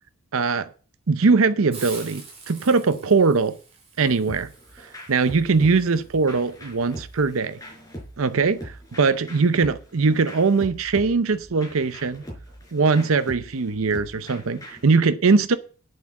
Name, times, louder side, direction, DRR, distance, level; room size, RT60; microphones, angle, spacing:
voice 1, 0.3-0.7 1.1-3.6 4.0-4.5 5.1-7.6 8.2-12.2 12.7-15.6, right 4 dB, 65° right, 0.7 m, -21 dB
Hiss, 1.7-7.3, right 4 dB, 30° right, 3.8 m, -45 dB
sound 1, 4.3-14.9, equal, 15° left, 5.0 m, -42 dB
8.6 x 7.9 x 7.1 m
head